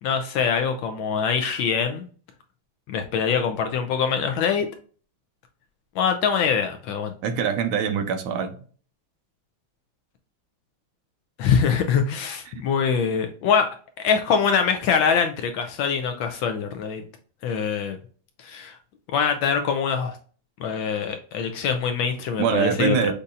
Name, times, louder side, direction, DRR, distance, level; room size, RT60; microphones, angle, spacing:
voice 1, 0.0-2.1 2.9-4.7 6.0-7.1 11.4-13.7 14.0-17.0 17.4-18.0 18.4-18.8 19.1-20.2 20.6-23.1, left 6 dB, 75° left, 1.2 m, -23 dB
voice 2, 7.2-8.5 12.5-12.6 22.4-23.1, right 7 dB, 75° right, 1.4 m, -23 dB
6.6 x 2.7 x 2.4 m
omnidirectional pair, 2.4 m